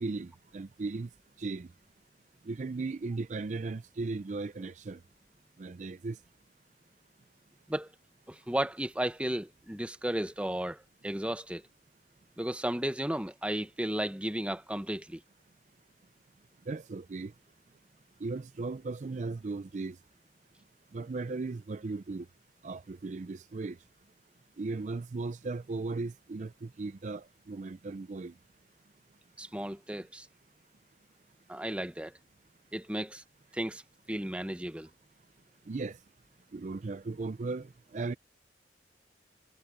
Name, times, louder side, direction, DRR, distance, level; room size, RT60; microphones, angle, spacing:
voice 1, 0.0-1.1 1.4-1.7 2.4-5.0 5.6-6.2 16.7-17.3 18.2-20.0 20.9-22.3 22.6-23.8 24.6-28.3 35.7-36.0 36.5-38.1, right 3 dB, 40° right, 0.4 m, -37 dB
voice 2, 8.3-11.6 12.4-15.2 29.4-30.3 31.5-32.1 32.7-33.2 33.5-33.8 34.1-34.9, right 1 dB, 5° right, 0.8 m, -34 dB
head